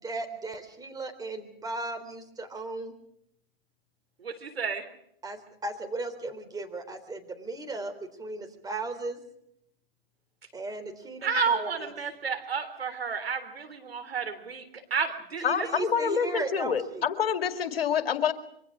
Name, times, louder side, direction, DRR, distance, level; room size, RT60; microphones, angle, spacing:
voice 1, 0.0-2.9 5.2-9.2 10.5-11.7 15.4-17.0, right 3 dB, 10° right, 6 dB, 3.8 m, -36 dB
voice 2, 4.2-4.8 11.2-14.6 14.9-15.7, right 5 dB, 85° right, 7 dB, 3.6 m, -31 dB
voice 3, 15.4-18.3, left 7 dB, 75° left, 8 dB, 2.3 m, -27 dB
26.0 x 24.0 x 4.9 m, 0.75 s
hypercardioid pair, 110°, 30 cm